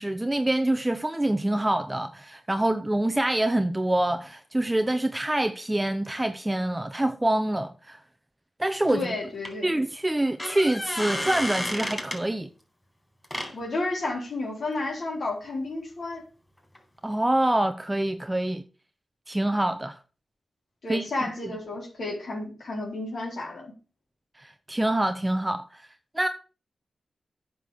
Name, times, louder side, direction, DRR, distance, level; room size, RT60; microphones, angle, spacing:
voice 1, 0.0-8.0 8.6-9.1 9.6-12.5 17.0-18.6 19.3-20.0 20.9-21.5 24.4-25.9 26.1-26.3, right 1 dB, 15° right, 0.7 m, -26 dB
sound 1, 8.8-9.0 9.4-9.5 10.2-12.2 13.2-13.5 16.7-16.8 17.1-17.2, left 1 dB, 10° left, 4.0 m, -31 dB
voice 2, 8.9-9.7 13.5-16.2 20.8-23.7, left 2 dB, 70° left, 4.0 m, -32 dB
9.4 x 6.0 x 7.0 m
cardioid pair, 60°, 0 cm